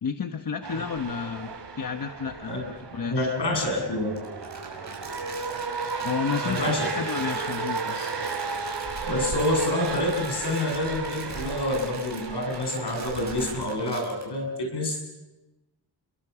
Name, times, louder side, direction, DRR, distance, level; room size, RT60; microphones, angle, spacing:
voice 1, 0.0-3.4 6.0-8.1, left 6 dB, 55° left, 6 dB, 1.2 m, -32 dB
sound 1, 0.6-13.7, right 4 dB, 85° right, 3.2 m, -34 dB
voice 2, 3.1-4.2 6.4-6.9 9.0-15.0, left 1 dB, 80° left, 2 dB, 7.9 m, -27 dB
Crumpling crinkling, 4.1-14.2, right 3 dB, 45° right, 6.1 m, -43 dB
29.5 x 22.5 x 7.0 m, 1.1 s
wide cardioid pair, 180°, 40 cm